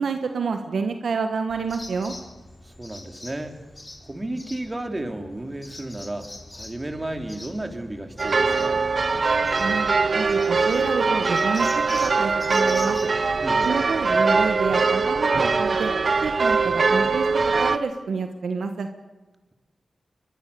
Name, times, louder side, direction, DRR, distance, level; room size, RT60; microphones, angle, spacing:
voice 1, 0.0-2.1 9.6-13.1 13.6-15.9 16.2-18.9, right 5 dB, 80° right, 6 dB, 1.4 m, -28 dB
sound 1, 1.5-13.7, left 2 dB, 30° left, 4.5 m, -43 dB
voice 2, 2.6-3.5 4.0-6.3 6.5-8.8 13.4-13.7, right 1 dB, 30° right, 5 dB, 3.4 m, -33 dB
sound 2, 8.2-17.8, right 4 dB, 55° right, 1.1 m, -22 dB
23.0 x 21.5 x 6.9 m, 1.2 s
cardioid pair, 40°, 0 cm